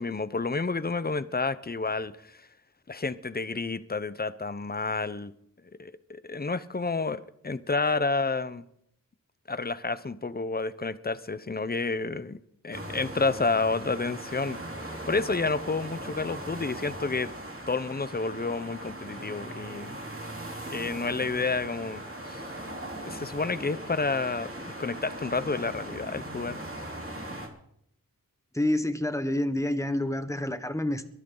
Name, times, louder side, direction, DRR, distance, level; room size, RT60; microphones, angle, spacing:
voice 1, 0.0-2.4 2.9-5.3 5.8-8.6 9.5-12.4 12.6-17.3 17.7-20.0 20.7-22.4 23.1-26.6, left 3 dB, 25° left, 0.9 m, -30 dB
sound 1, 12.7-27.5, right 1 dB, 40° right, 3.8 m, -39 dB
voice 2, 28.5-31.0, left 1 dB, 10° left, 1.4 m, -28 dB
22.5 x 13.0 x 4.0 m
wide cardioid pair, 65°, 35 cm